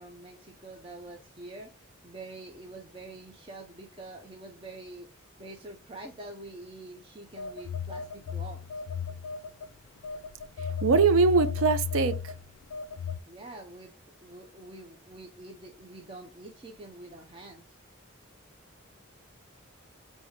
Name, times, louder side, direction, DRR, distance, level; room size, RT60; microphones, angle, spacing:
voice 1, 0.0-8.6 13.2-17.6, right 2 dB, 25° right, 0.5 m, -46 dB
Telephone, 7.4-9.7 10.0-13.2, left 6 dB, 80° left, 0.3 m, -34 dB
voice 2, 10.6-12.3, right 4 dB, 80° right, 0.5 m, -23 dB
4.7 x 2.7 x 3.5 m
head